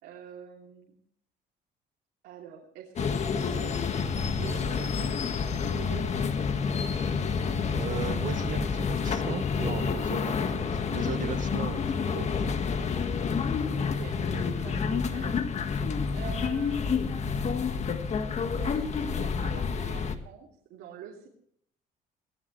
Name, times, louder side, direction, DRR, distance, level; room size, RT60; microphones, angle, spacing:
voice 1, 0.0-1.0 2.2-6.5 12.0-12.6 13.8-15.8 16.1-17.3 18.6-21.3, right 7 dB, 85° right, -1 dB, 3.0 m, -45 dB
sound 1, 3.0-20.2, left 5 dB, 40° left, 1.6 m, -29 dB
sound 2, 3.1-19.0, right 4 dB, 20° left, 7.1 m, -50 dB
voice 2, 7.7-12.5, right 8 dB, 50° right, 10 dB, 1.4 m, -37 dB
19.5 x 17.0 x 3.2 m, 0.67 s
cardioid pair, 110°, 17 cm